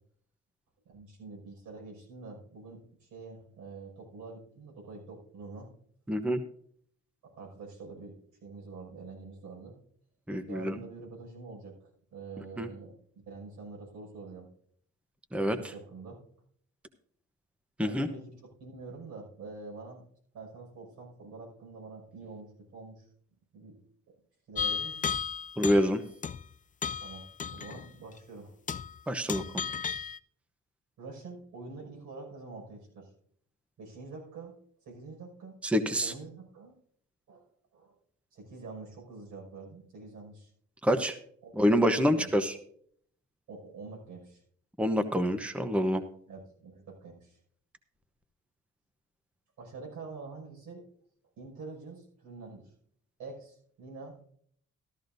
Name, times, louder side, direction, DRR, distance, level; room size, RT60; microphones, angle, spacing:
voice 1, 0.9-5.7 7.2-8.1 8.4-9.8 10.5-11.7 12.1-13.0 13.3-14.5 15.4-16.2 17.8-20.0 20.3-23.1 23.5-23.8 24.5-25.0 26.8-27.2 27.5-28.5 31.0-33.1 33.8-34.5 34.8-35.6 36.0-36.7 37.3-37.4 37.7-37.9 38.3-40.5 41.4-41.5 41.9-42.3 43.5-44.4 46.3-47.4 49.6-50.8 51.4-52.7 53.2-54.3, right 3 dB, 80° right, -1 dB, 5.8 m, -46 dB
voice 2, 6.1-6.4 10.3-10.8 12.6-12.7 15.3-15.6 17.8-18.1 25.6-26.0 29.1-29.4 35.6-36.1 40.8-41.2 41.6-42.6 44.8-46.0, equal, 5° right, 8 dB, 0.9 m, -26 dB
sound 1, 24.6-25.9 26.2-26.5 26.8-27.9 28.2-28.3 28.7-29.0 29.3-30.2, left 7 dB, 25° left, 0.4 m, -34 dB
13.5 x 13.5 x 2.6 m, 0.62 s
cardioid pair, 90°, 30 cm